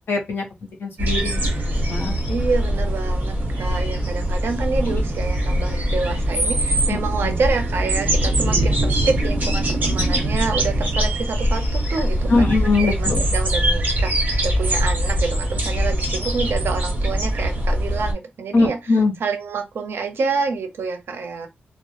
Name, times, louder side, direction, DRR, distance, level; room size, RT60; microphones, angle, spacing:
voice 1, 0.1-0.4 0.8-1.5 1.9-2.2 4.9-5.0 6.9-7.4 12.3-13.2 18.5-19.1, left 3 dB, 75° left, 0.7 m, -21 dB
sound 1, 1.0-18.1, right 1 dB, 45° right, 0.9 m, -22 dB
voice 2, 2.3-12.5 13.0-14.1 14.4-18.8 19.2-21.5, right 4 dB, 90° right, 0.5 m, -27 dB
2.1 x 2.0 x 2.8 m
wide cardioid pair, 175°, 4 cm